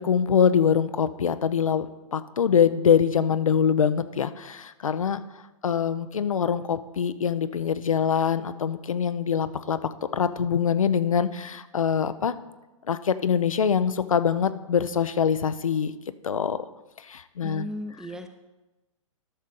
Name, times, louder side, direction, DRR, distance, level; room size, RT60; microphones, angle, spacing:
voice 1, 0.0-1.9 2.1-5.2 5.6-9.8 10.1-12.3 12.9-15.9 16.2-16.6 17.1-17.6, left 7 dB, 75° left, 12 dB, 0.5 m, -24 dB
voice 2, 17.4-18.3, equal, 5° right, 7 dB, 0.4 m, -36 dB
12.0 x 6.3 x 3.7 m, 1.1 s
figure-of-eight pair, 115°, 17 cm